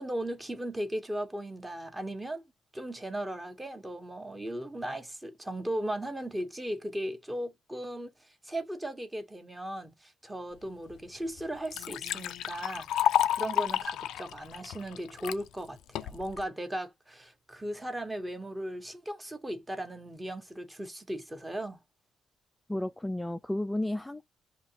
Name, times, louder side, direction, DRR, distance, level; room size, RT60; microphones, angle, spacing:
voice 1, 0.0-2.4 2.7-21.8, right 1 dB, 15° right, 1.2 m, -37 dB
Liquid, 10.9-11.0 11.4-15.4 16.0-16.4, left 12 dB, 85° left, 0.4 m, -30 dB
voice 2, 22.7-24.2, left 1 dB, 10° left, 0.4 m, -32 dB
5.0 x 2.9 x 2.8 m
cardioid pair, 90°, 0 cm